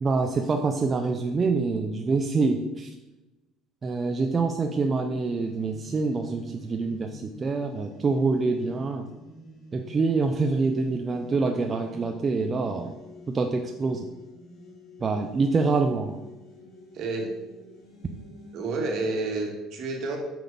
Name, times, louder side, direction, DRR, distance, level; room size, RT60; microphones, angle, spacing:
voice 1, 0.0-3.0 3.8-9.1 9.7-13.0 13.3-14.1 15.0-16.2, right 4 dB, 30° right, 4 dB, 0.5 m, -26 dB
sound 1, 5.2-19.1, left 1 dB, 45° left, 2.3 m, -49 dB
voice 2, 16.9-17.3 18.5-20.2, right 3 dB, 60° right, 2 dB, 1.8 m, -29 dB
6.0 x 4.7 x 5.3 m, 1.0 s
cardioid pair, 120°, 0 cm